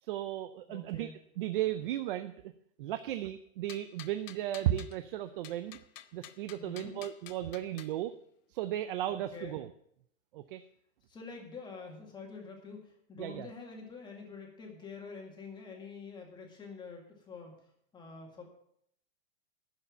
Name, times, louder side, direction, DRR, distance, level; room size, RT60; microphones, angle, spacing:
voice 1, 0.0-1.1 1.4-2.5 2.8-5.8 6.1-8.1 8.5-9.7 10.3-10.6 13.2-13.5, right 13 dB, 45° right, 11 dB, 0.5 m, -35 dB
voice 2, 0.7-1.2 6.6-7.0 9.1-9.6 11.1-17.6 17.9-18.4, left 4 dB, 10° left, 1 dB, 1.9 m, -46 dB
sound 1, 3.7-5.0 5.4-7.9, left 12 dB, 80° left, 0.9 m, -50 dB
11.0 x 7.1 x 7.2 m, 0.71 s
supercardioid pair, 165°, 38 cm